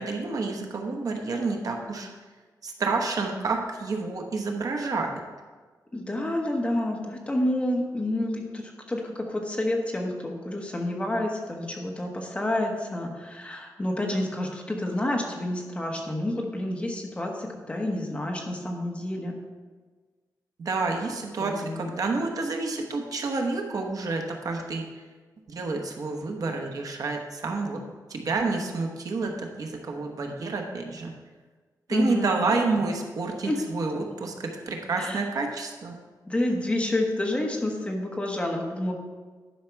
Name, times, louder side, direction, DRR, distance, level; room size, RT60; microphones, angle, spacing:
voice 1, 0.0-2.1 2.6-5.1 20.6-24.8 25.5-27.8 28.1-31.1 31.9-36.0, right 3 dB, 55° right, 2 dB, 1.0 m, -29 dB
voice 2, 5.9-19.3 21.4-21.9 31.9-32.4 33.4-33.6 35.0-35.3 36.3-38.9, left 1 dB, 15° left, 0 dB, 1.2 m, -29 dB
11.0 x 5.5 x 4.6 m, 1.4 s
wide cardioid pair, 180°, 7 cm